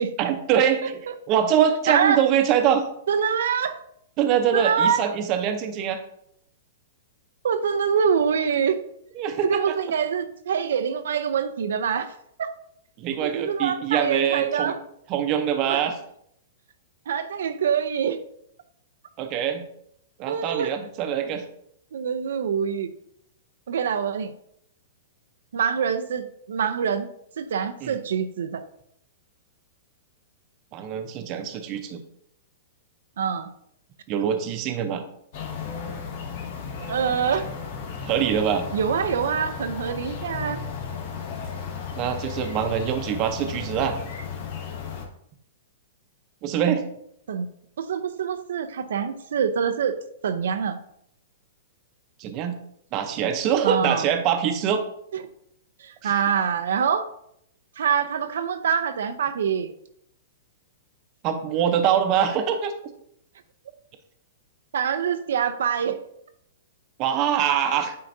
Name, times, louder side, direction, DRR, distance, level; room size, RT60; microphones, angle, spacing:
voice 1, 0.2-1.0 1.3-2.8 4.2-6.0 9.2-9.8 13.0-14.7 15.1-15.9 19.2-19.7 20.2-21.4 27.8-28.0 30.7-32.0 34.1-35.0 38.0-38.6 42.0-44.0 46.4-46.8 52.2-52.6 52.9-54.8 56.0-56.1 61.2-62.7 67.0-68.0, right 8 dB, 35° right, 7 dB, 0.6 m, -24 dB
voice 2, 1.9-2.2 3.1-3.8 4.5-5.0 7.4-8.8 9.4-12.1 12.4-12.5 13.2-14.8 15.7-15.8 17.1-18.2 20.3-20.7 21.9-22.9 23.7-24.3 25.5-27.1 27.4-28.6 33.2-33.5 36.8-37.5 38.7-40.6 47.3-47.5 47.8-50.0 50.2-50.8 53.6-54.1 55.1-55.2 55.8-57.1 57.8-59.7 64.7-66.0, right 7 dB, 80° right, 8 dB, 0.5 m, -25 dB
sound 1, 35.3-45.0, left 6 dB, 50° left, 1.3 m, -34 dB
9.3 x 3.8 x 2.6 m, 0.72 s
hypercardioid pair, 150°, 0 cm